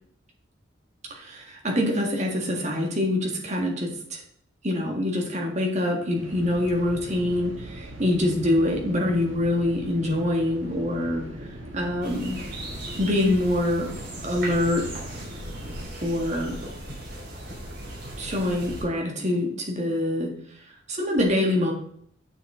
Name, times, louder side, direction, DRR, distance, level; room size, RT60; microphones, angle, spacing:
voice 1, 1.1-4.2 4.6-11.2 11.7-12.4 13.0-13.9 14.2-14.9 16.0-16.6 18.2-20.3 20.9-21.7, left 1 dB, 35° right, 1 dB, 1.9 m, -25 dB
sound 1, 6.1-15.9, right 1 dB, 75° right, 1.7 m, -40 dB
sound 2, 12.0-18.8, right 1 dB, 55° right, 3.6 m, -38 dB
9.0 x 6.7 x 3.8 m, 0.64 s
head